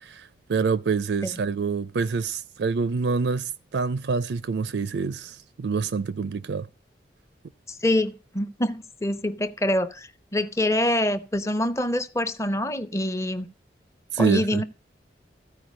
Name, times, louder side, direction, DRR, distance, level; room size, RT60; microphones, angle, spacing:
voice 1, 0.0-6.7 14.1-14.6, right 4 dB, 80° right, 0.4 m, -26 dB
voice 2, 7.7-13.5 14.2-14.6, left 1 dB, 15° left, 0.7 m, -25 dB
14.5 x 4.9 x 6.3 m
head